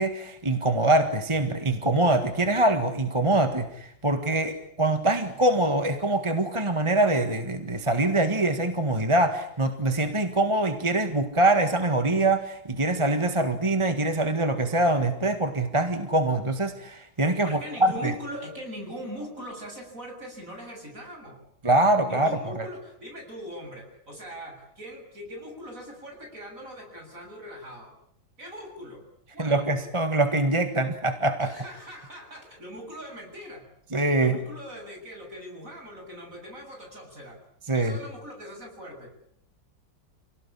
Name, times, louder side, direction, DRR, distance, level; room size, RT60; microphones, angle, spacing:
voice 1, 0.0-18.1 21.6-22.7 29.4-31.5 33.9-34.4 37.7-38.0, right 2 dB, 15° right, 8 dB, 1.7 m, -24 dB
voice 2, 17.4-21.4 22.0-27.9 28.4-29.1 29.3-29.6 31.4-33.7 34.2-37.4 37.7-39.3, equal, 45° right, 3 dB, 7.5 m, -41 dB
28.0 x 18.5 x 10.0 m, 0.70 s
omnidirectional pair, 1.9 m